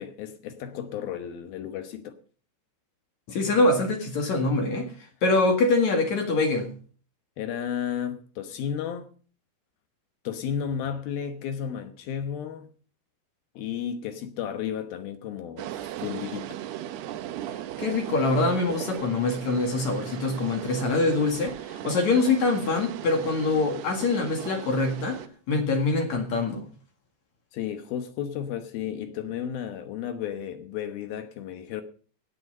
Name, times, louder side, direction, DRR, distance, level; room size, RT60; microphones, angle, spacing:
voice 1, 0.0-2.2 7.4-9.1 10.2-12.7 13.6-15.7 16.0-16.6 27.5-31.8, left 8 dB, 70° left, 2.6 m, -33 dB
voice 2, 3.3-4.9 5.2-6.7 17.8-25.2 25.5-26.6, left 3 dB, 50° left, 2.7 m, -24 dB
sound 1, 15.6-25.3, right 12 dB, 75° right, 2.8 m, -37 dB
17.0 x 8.9 x 5.5 m
omnidirectional pair, 5.0 m